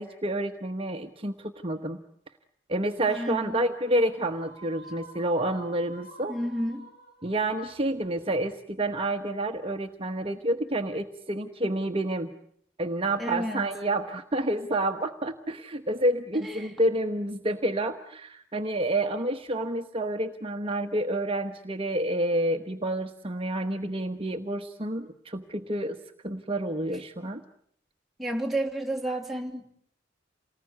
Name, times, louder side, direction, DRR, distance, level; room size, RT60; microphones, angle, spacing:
voice 1, 0.0-2.0 2.7-6.4 7.2-12.3 12.8-26.0 26.2-27.4, right 1 dB, 30° right, 6 dB, 1.2 m, -29 dB
voice 2, 3.1-3.6 6.3-6.9 13.2-13.6 16.4-16.7 28.2-29.6, right 1 dB, ahead, 0 dB, 2.8 m, -31 dB
sound 1, 3.3-8.8, equal, 55° left, 7.7 m, -50 dB
29.0 x 19.5 x 9.5 m, 0.68 s
head